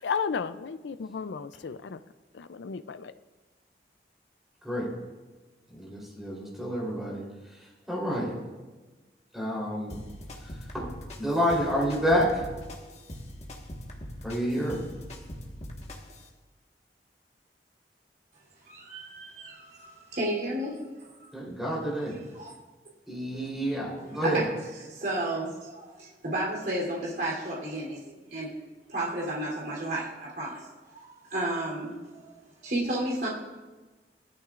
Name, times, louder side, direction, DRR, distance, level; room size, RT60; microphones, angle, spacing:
voice 1, 0.0-2.0 2.4-3.1, left 6 dB, 90° left, 13 dB, 0.5 m, -33 dB
voice 2, 5.7-7.2 7.9-8.3 9.3-10.0 10.7-10.9 11.2-12.3 14.2-14.8 21.3-22.2 23.1-24.4, equal, ahead, -5 dB, 3.6 m, -28 dB
sound 1, 9.9-16.3, left 1 dB, 40° left, 1.5 m, -42 dB
voice 3, 18.6-21.1 22.1-22.5 23.3-23.5 24.0-28.5 28.9-31.0 31.3-32.3 32.6-33.3, right 1 dB, 60° right, -5 dB, 3.3 m, -33 dB
17.5 x 12.5 x 2.5 m, 1.2 s
head